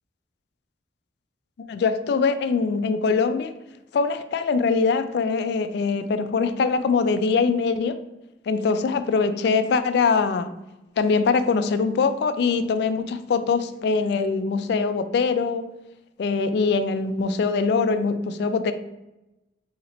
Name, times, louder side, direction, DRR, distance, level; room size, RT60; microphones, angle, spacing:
voice 1, 1.7-3.5 3.9-8.0 8.5-10.5 11.0-15.6 16.2-18.7, left 4 dB, 65° left, 10 dB, 0.3 m, -23 dB
2.9 x 2.8 x 4.0 m, 0.99 s
head